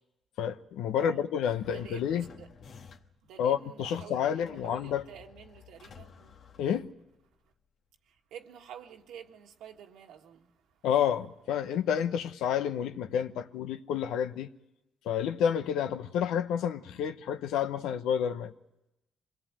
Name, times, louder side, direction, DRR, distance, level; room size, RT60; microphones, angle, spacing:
voice 1, 0.4-2.3 3.4-5.1 6.6-6.9 10.8-14.5 15.0-18.5, left 8 dB, 90° left, 0.9 m, -29 dB
sound 1, 1.5-3.3 4.4-7.3, left 6 dB, 60° left, 1.4 m, -53 dB
voice 2, 1.7-2.5 3.2-6.4 8.3-10.5, right 9 dB, 85° right, 1.6 m, -49 dB
25.0 x 18.0 x 8.8 m
cardioid pair, 90°, 0 cm